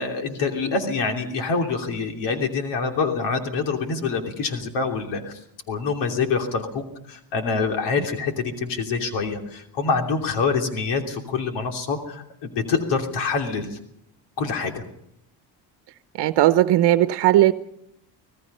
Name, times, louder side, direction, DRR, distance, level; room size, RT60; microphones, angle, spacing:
voice 1, 0.0-5.4 5.7-13.8 14.4-14.8, left 4 dB, 90° left, 3.1 m, -26 dB
voice 2, 16.1-17.5, right 14 dB, 75° right, 0.9 m, -17 dB
26.0 x 18.0 x 5.5 m
cardioid pair, 145°, 41 cm